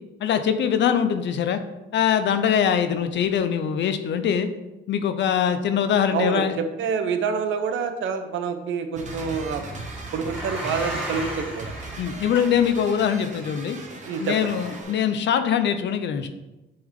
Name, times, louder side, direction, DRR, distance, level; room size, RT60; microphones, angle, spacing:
voice 1, 0.2-1.6 1.9-4.5 4.9-6.6 12.0-13.8 14.2-16.3, left 8 dB, 65° left, 10 dB, 0.6 m, -22 dB
voice 2, 6.1-9.6 10.1-11.7 14.1-14.5, right 6 dB, 75° right, 8 dB, 0.7 m, -27 dB
sound 1, 9.0-15.1, right 3 dB, 40° right, 1.0 m, -39 dB
sound 2, 9.1-14.8, equal, 5° right, 2.0 m, -37 dB
7.8 x 3.6 x 3.7 m, 1.0 s
cardioid pair, 90°, 20 cm